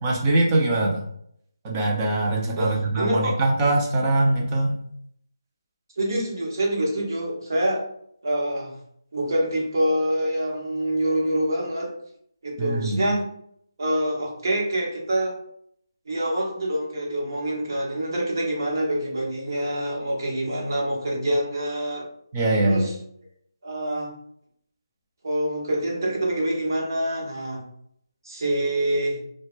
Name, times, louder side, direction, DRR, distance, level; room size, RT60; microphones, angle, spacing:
voice 1, 0.0-1.0 1.6-4.8 12.6-13.0 22.3-22.9, right 2 dB, 15° right, -2 dB, 0.3 m, -22 dB
voice 2, 2.5-3.3 6.0-7.8 8.2-8.7 9.1-11.9 12.4-13.3 13.8-15.3 16.1-22.1 22.6-22.9 23.6-24.1 25.2-27.6 28.2-29.2, right 1 dB, 55° right, -2 dB, 0.9 m, -26 dB
2.1 x 2.0 x 3.0 m, 0.69 s
figure-of-eight pair, 170°, 2 cm